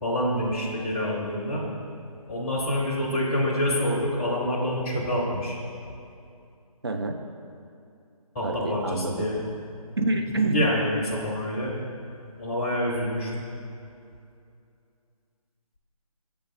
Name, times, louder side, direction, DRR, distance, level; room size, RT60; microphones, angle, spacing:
voice 1, 0.0-1.7 2.3-5.6 8.3-9.4 10.5-11.7 12.4-13.3, left 1 dB, 10° left, -6 dB, 0.5 m, -27 dB
voice 2, 6.8-7.3 8.4-9.3 10.0-10.6, right 2 dB, 40° right, 4 dB, 0.4 m, -27 dB
6.8 x 3.4 x 5.2 m, 2.5 s
figure-of-eight pair, 150°, 19 cm